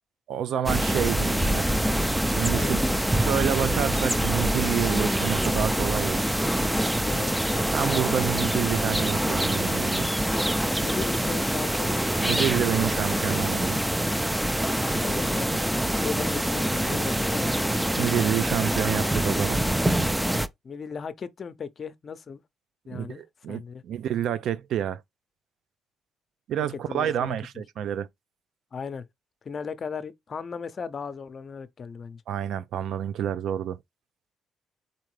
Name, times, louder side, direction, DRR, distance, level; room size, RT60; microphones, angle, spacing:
voice 1, 0.3-1.7 2.2-2.8 3.1-6.2 7.7-10.1 12.2-13.8 18.0-19.6 22.9-25.0 26.5-28.1 32.3-33.8, right 10 dB, 75° right, 0.4 m, -28 dB
sound 1, 0.7-20.5, right 1 dB, 5° right, 0.4 m, -25 dB
voice 2, 2.5-3.0 7.1-7.3 10.5-12.1 15.0-15.6 16.0-17.5 19.6-19.7 20.6-22.4 22.9-23.2 23.5-23.8 26.6-27.4 28.7-29.1 29.4-32.2, left 6 dB, 45° left, 0.6 m, -36 dB
4.3 x 3.7 x 3.2 m
cardioid pair, 90°, 0 cm